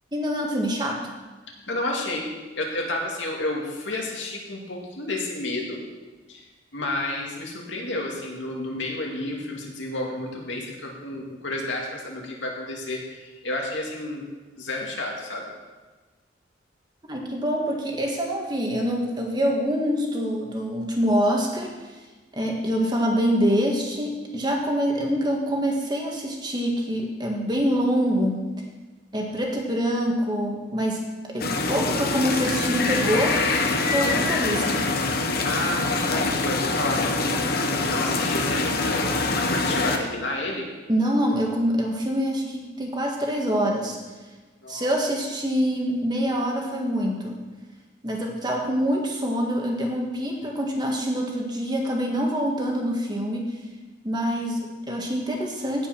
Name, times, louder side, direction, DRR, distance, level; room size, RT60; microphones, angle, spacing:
voice 1, 0.1-1.0 17.1-21.7 22.3-28.4 29.1-33.4 33.9-34.9 40.9-44.0 44.7-47.4 48.0-53.5 54.0-55.9, equal, 20° right, 0 dB, 1.8 m, -25 dB
voice 2, 1.7-2.3 2.6-5.8 6.3-6.4 6.7-14.3 14.6-15.5 35.1-39.0 39.3-40.7 44.6-45.0, left 2 dB, 75° left, -1 dB, 2.4 m, -31 dB
sound 1, 31.4-40.0, left 3 dB, 55° left, 1.1 m, -24 dB
16.0 x 5.5 x 6.0 m, 1.3 s
head